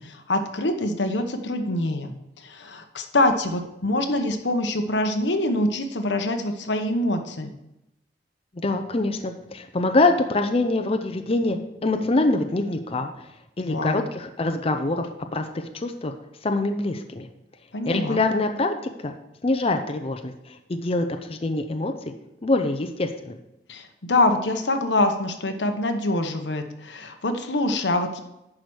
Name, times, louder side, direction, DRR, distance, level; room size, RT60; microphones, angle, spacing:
voice 1, 0.0-7.5 13.6-14.0 17.7-18.2 23.7-28.2, left 2 dB, 85° left, 6 dB, 1.0 m, -25 dB
voice 2, 8.5-13.1 13.6-16.1 16.4-17.3 17.8-19.1 19.4-22.1 22.4-23.4, left 2 dB, 35° left, 6 dB, 0.6 m, -25 dB
10.5 x 4.9 x 6.3 m, 0.89 s
head